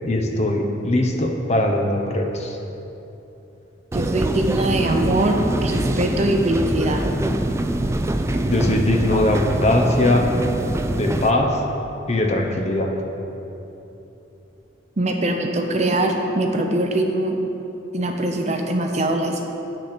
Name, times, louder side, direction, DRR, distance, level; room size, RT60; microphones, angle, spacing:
voice 1, 0.0-2.6 8.5-10.3 10.9-11.6 12.1-12.9, left 1 dB, 35° left, 2 dB, 0.8 m, -20 dB
sound 1, 3.9-11.3, right 1 dB, 15° right, 0.3 m, -24 dB
voice 2, 3.9-7.1 15.0-17.4 17.9-19.4, right 1 dB, 35° right, 3 dB, 0.7 m, -22 dB
8.1 x 6.6 x 6.0 m, 3.0 s
head